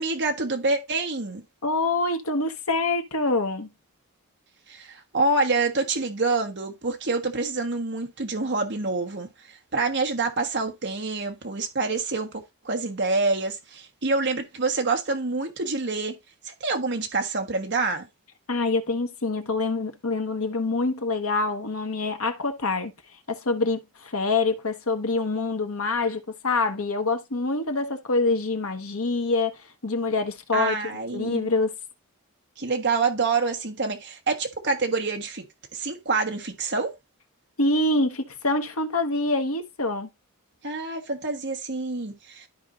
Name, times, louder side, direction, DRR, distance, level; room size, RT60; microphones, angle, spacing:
voice 1, 0.0-1.4 4.7-9.3 9.7-16.1 16.4-18.1 30.5-31.5 32.6-35.4 35.7-36.9 40.6-42.5, right 3 dB, 50° right, 1.3 m, -27 dB
voice 2, 1.6-3.7 18.5-22.9 23.3-29.5 29.8-30.8 31.1-31.7 37.6-40.1, left 3 dB, 75° left, 1.3 m, -25 dB
13.0 x 4.4 x 2.6 m
head